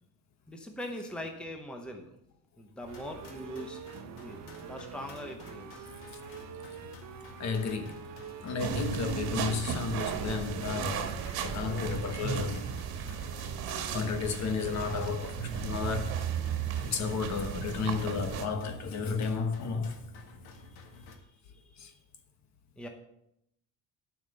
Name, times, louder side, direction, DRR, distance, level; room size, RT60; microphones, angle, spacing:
voice 1, 0.5-2.1 2.6-5.9 20.6-20.7 21.1-22.0 22.8-22.9, equal, 5° left, 0.9 m, -42 dB
sound 1, 2.8-21.2, left 3 dB, 85° left, 1.9 m, -51 dB
sound 2, 2.9-15.0, right 8 dB, 45° right, 0.9 m, -46 dB
voice 2, 7.4-8.1 8.4-12.7 13.9-16.2 16.8-20.0 21.8-21.9, left 5 dB, 50° left, 1.2 m, -33 dB
sound 3, 8.6-18.5, right 7 dB, 85° right, 1.6 m, -35 dB
10.5 x 5.9 x 6.7 m
cardioid pair, 170°, 36 cm